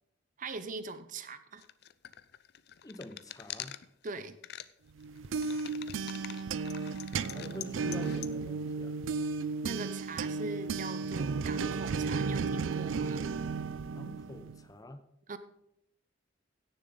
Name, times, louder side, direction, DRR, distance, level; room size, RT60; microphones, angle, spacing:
voice 1, 0.4-1.6 4.0-4.4 9.6-13.3 15.3-15.4, right 3 dB, 40° right, 12 dB, 0.6 m, -41 dB
sound 1, 1.6-4.1 4.4-4.7 5.0-8.3, left 11 dB, 55° left, 0.5 m, -45 dB
voice 2, 2.8-3.8 7.2-9.0 13.9-15.0, left 1 dB, 20° left, 10 dB, 0.6 m, -46 dB
sound 2, 5.0-14.6, right 4 dB, 85° right, 0.4 m, -34 dB
16.5 x 6.8 x 3.9 m, 0.79 s
head